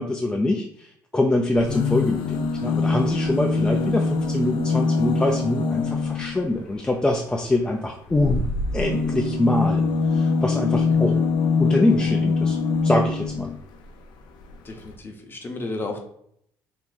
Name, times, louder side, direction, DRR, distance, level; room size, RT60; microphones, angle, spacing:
voice 1, 0.0-8.5 8.7-9.8 10.1-11.2 11.6-12.6 12.8-13.5, left 2 dB, 10° left, 1 dB, 0.4 m, -24 dB
sound 1, 1.6-6.4 8.1-13.6 14.5-14.6 14.8-14.9, left 4 dB, 75° left, 0.5 m, -23 dB
voice 2, 10.9-11.2 14.6-16.0, left 2 dB, 30° left, 3 dB, 0.8 m, -33 dB
2.8 x 2.4 x 3.9 m, 0.68 s
cardioid pair, 95°, 8 cm